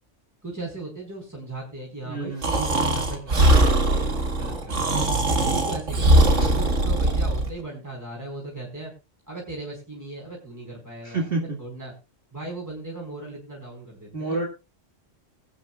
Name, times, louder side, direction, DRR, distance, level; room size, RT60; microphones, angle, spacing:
voice 1, 0.4-5.0 5.3-6.1 6.4-8.9 9.3-11.2 11.6-11.9 12.3-14.4, right 2 dB, 15° right, -2 dB, 4.8 m, -37 dB
voice 2, 2.0-2.5 6.4-6.6 11.0-11.6 14.1-14.5, right 2 dB, 50° right, -1 dB, 2.4 m, -29 dB
Breathing, 2.4-7.5, right 1 dB, 75° right, 2.4 m, -20 dB
21.5 x 9.7 x 2.4 m, 0.28 s
omnidirectional pair, 1.3 m